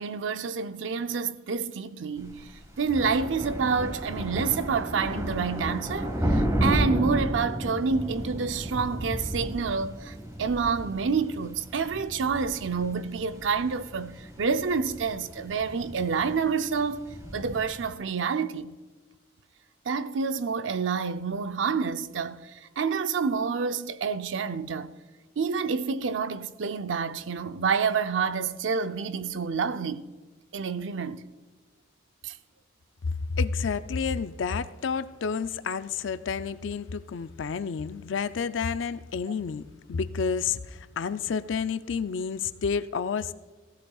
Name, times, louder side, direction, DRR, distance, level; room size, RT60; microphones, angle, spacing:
voice 1, 0.0-18.7 19.9-24.9 25.4-30.1 30.5-31.2 32.2-32.4, right 5 dB, 85° right, 0.6 m, -28 dB
sound 1, 2.2-18.0, equal, 15° right, 1.3 m, -33 dB
voice 2, 33.4-43.3, left 5 dB, 85° left, 0.5 m, -30 dB
16.5 x 14.5 x 2.4 m
head